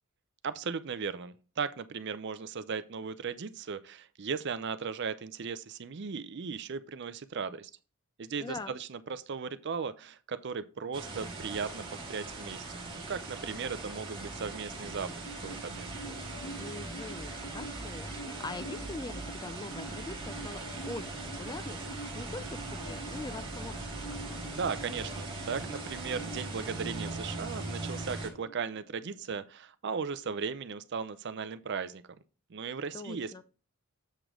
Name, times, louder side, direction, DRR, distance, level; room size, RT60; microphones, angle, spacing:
voice 1, 0.4-7.7 8.2-15.1 15.4-16.0 24.5-32.0 32.5-33.4, right 5 dB, 50° right, 0.5 m, -37 dB
voice 2, 8.4-8.8 16.6-20.6 20.9-24.2 32.9-33.4, left 3 dB, 20° left, 0.3 m, -43 dB
sound 1, 10.9-28.3, right 2 dB, 25° right, 1.8 m, -40 dB
sound 2, 14.4-29.4, right 1 dB, 75° left, 1.2 m, -47 dB
7.6 x 5.0 x 3.7 m
head